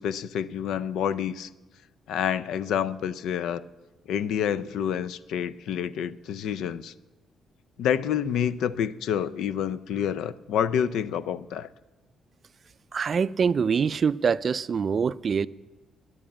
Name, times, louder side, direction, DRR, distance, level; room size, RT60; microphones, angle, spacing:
voice 1, 0.0-1.5 2.1-3.7 4.1-6.9 7.8-11.7, left 9 dB, 80° left, 0.4 m, -28 dB
voice 2, 12.9-15.5, right 6 dB, 45° right, 0.3 m, -24 dB
11.0 x 9.2 x 8.6 m
cardioid pair, 90°, 0 cm